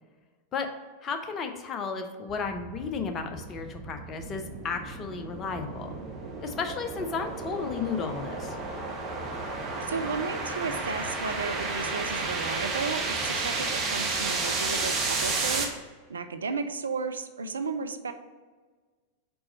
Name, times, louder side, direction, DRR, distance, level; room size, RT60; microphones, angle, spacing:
voice 1, 1.0-5.9 6.4-8.6, left 5 dB, 30° left, 6 dB, 0.7 m, -33 dB
sound 1, 2.3-15.7, right 3 dB, 30° right, 1.1 m, -32 dB
voice 2, 9.9-15.7 16.1-18.1, right 4 dB, 70° right, 8 dB, 0.4 m, -33 dB
4.6 x 4.2 x 5.1 m, 1.4 s
figure-of-eight pair, 90°, 0 cm